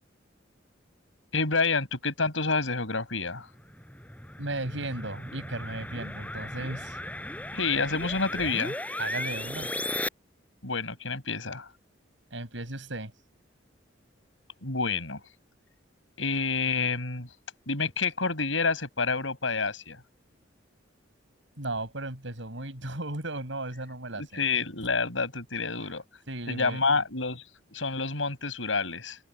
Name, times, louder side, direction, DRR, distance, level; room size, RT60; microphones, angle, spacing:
voice 1, 1.3-3.5 7.5-8.8 10.6-11.7 14.6-15.2 16.2-17.3 17.7-20.0 24.2-26.0 26.5-29.2, left 4 dB, 85° left, 5.9 m, -28 dB
sound 1, 3.6-10.1, left 1 dB, 10° left, 7.1 m, -36 dB
voice 2, 4.4-7.0 9.0-9.7 12.3-13.1 21.6-24.4 26.3-26.8, right 2 dB, 75° right, 6.6 m, -35 dB
open air
head